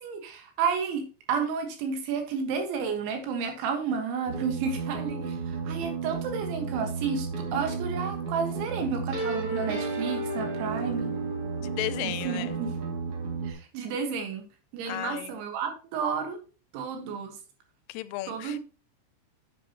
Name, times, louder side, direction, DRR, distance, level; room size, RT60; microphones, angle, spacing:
voice 1, 0.0-11.1 12.0-12.7 13.5-14.5 14.7-16.4 16.7-17.4 18.3-18.6, right 6 dB, 70° right, 3.6 m, -31 dB
sound 1, 4.3-13.5, right 4 dB, 40° right, 2.2 m, -32 dB
voice 2, 11.6-12.6 14.9-15.4 17.9-18.6, left 17 dB, 85° left, 3.1 m, -34 dB
9.6 x 8.2 x 2.9 m
omnidirectional pair, 5.7 m